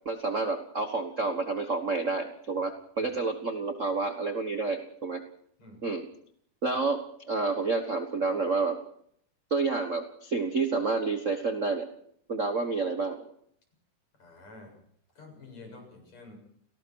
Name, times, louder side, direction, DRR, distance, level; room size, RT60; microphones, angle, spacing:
voice 1, 0.0-5.2 5.8-6.0 6.6-8.8 9.5-11.9 12.3-13.2, right 3 dB, 50° right, 6 dB, 0.9 m, -29 dB
voice 2, 5.6-6.0 14.2-14.8 15.2-16.4, left 3 dB, 55° left, 3 dB, 8.6 m, -49 dB
30.0 x 18.5 x 4.7 m, 0.67 s
omnidirectional pair, 3.7 m